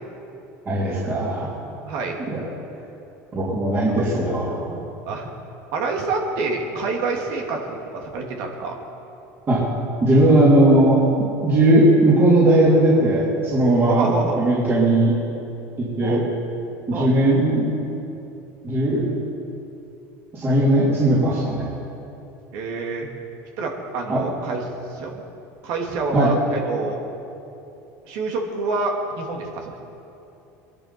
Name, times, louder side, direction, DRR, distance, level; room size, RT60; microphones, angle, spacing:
voice 1, 0.7-1.5 2.3-2.4 3.3-4.8 9.5-9.6 10.0-11.0 11.4-14.1 14.4-15.1 15.8-16.2 16.9-17.7 18.6-19.1 20.3-21.7 24.1-24.2 26.1-26.3, right 1 dB, 30° right, -7 dB, 3.5 m, -18 dB
voice 2, 1.8-2.2 5.0-5.3 5.7-8.8 13.9-14.4 16.0-16.3 16.9-17.1 20.9-21.0 22.5-23.1 23.6-24.6 24.9-25.2 25.6-27.0 28.1-29.7, right 3 dB, 70° right, 1 dB, 2.5 m, -27 dB
21.5 x 12.0 x 4.6 m, 2.8 s
supercardioid pair, 105°, 7 cm